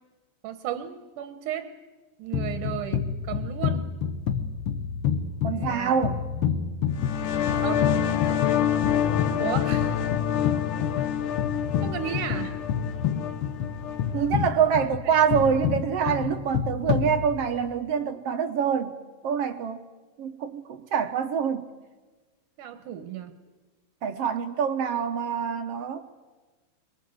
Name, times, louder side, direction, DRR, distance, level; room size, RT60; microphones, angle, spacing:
voice 1, 0.4-1.7 2.2-3.0 3.3-3.9 5.5-6.0 7.6-7.9 9.4-10.1 11.8-12.6 14.6-15.1 22.6-23.4, right 10 dB, 85° right, 2.7 m, -34 dB
sound 1, 2.3-17.7, left 7 dB, 60° left, 1.7 m, -29 dB
voice 2, 5.4-6.2 14.1-18.9 19.2-19.8 20.2-21.6 24.0-26.0, right 7 dB, 65° right, 1.7 m, -25 dB
sound 2, 6.9-14.3, left 9 dB, 85° left, 2.6 m, -27 dB
24.5 x 22.5 x 7.9 m
omnidirectional pair, 3.5 m